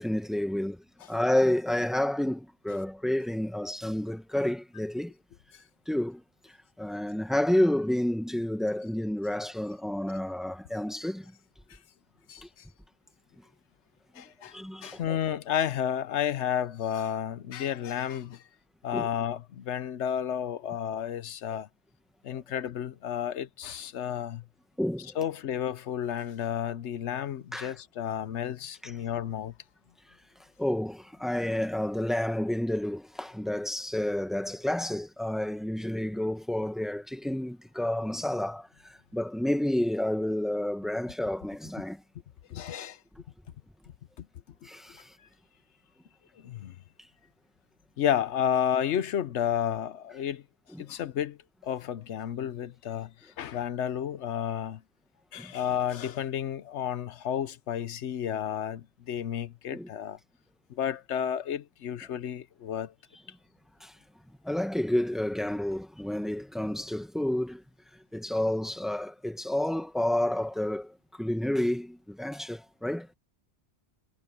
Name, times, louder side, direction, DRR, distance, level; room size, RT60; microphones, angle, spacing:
voice 1, 0.0-5.1 5.9-11.3 12.4-12.5 14.1-14.2 14.5-15.2 18.9-19.1 24.8-25.2 27.5-27.7 28.8-28.9 30.6-42.0 44.6-45.1 50.7-50.8 55.4-55.5 59.7-59.9 63.8-63.9 64.4-67.6 68.1-73.1, left 1 dB, ahead, 1.5 m, -30 dB
voice 2, 12.3-12.7 14.1-18.4 18.8-21.7 22.2-24.4 25.2-29.5 42.5-43.0 44.2-44.3 46.3-46.8 48.0-50.4 50.8-51.4 51.6-54.8 55.3-60.2 60.7-62.9, left 9 dB, 85° left, 1.0 m, -31 dB
omnidirectional pair, 1.1 m